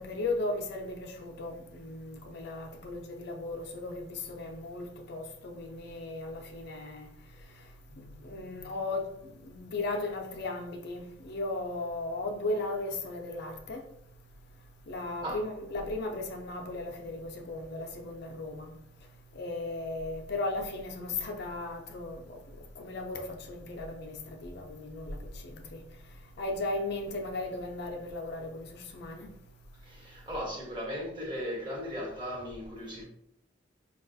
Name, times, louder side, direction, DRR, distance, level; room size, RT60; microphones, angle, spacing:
voice 1, 0.0-7.1 7.9-9.1 9.4-13.8 14.9-18.7 19.4-22.4 22.8-24.2 24.4-25.2 25.4-25.8 26.4-29.3, left 2 dB, 60° left, 0.5 m, -36 dB
voice 2, 29.8-33.0, equal, 25° right, 1.1 m, -37 dB
4.6 x 2.3 x 2.6 m
head